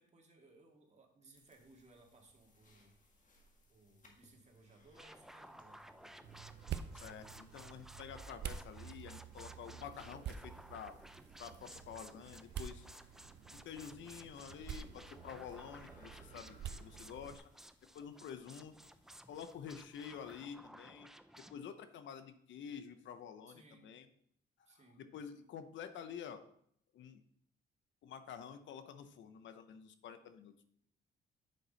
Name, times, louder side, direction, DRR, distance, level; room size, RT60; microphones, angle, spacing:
voice 1, 0.0-3.3 3.7-6.3 23.5-23.9 24.7-25.0, right 2 dB, 35° right, 2 dB, 1.9 m, -63 dB
sound 1, 1.3-20.6, left 2 dB, 40° left, 1.8 m, -69 dB
sound 2, 4.9-21.6, equal, ahead, 0.4 m, -57 dB
sound 3, 6.2-17.4, right 8 dB, 60° right, 0.6 m, -48 dB
voice 2, 6.9-11.0 11.4-12.9 13.5-17.5 17.9-18.8 19.3-21.1 21.4-24.1 24.7-26.4 26.9-27.2 28.0-30.7, left 8 dB, 70° left, 10 dB, 0.8 m, -49 dB
8.3 x 6.0 x 4.1 m, 0.68 s
cardioid pair, 90°, 20 cm